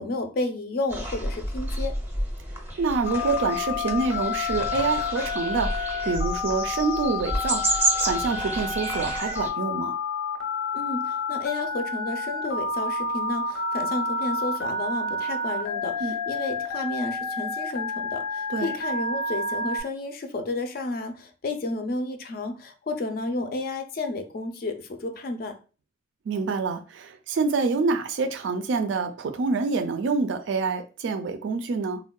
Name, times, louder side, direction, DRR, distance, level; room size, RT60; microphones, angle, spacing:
voice 1, 0.0-2.0 10.7-25.6, left 2 dB, 50° left, 0.4 m, -31 dB
sound 1, 0.9-9.5, right 1 dB, 10° right, 0.5 m, -30 dB
voice 2, 2.8-10.0 16.0-16.1 18.5-18.7 26.3-32.0, right 4 dB, 80° right, 0.4 m, -27 dB
Telephone, 3.1-19.8, left 3 dB, 85° left, 0.7 m, -29 dB
3.5 x 2.1 x 2.2 m
head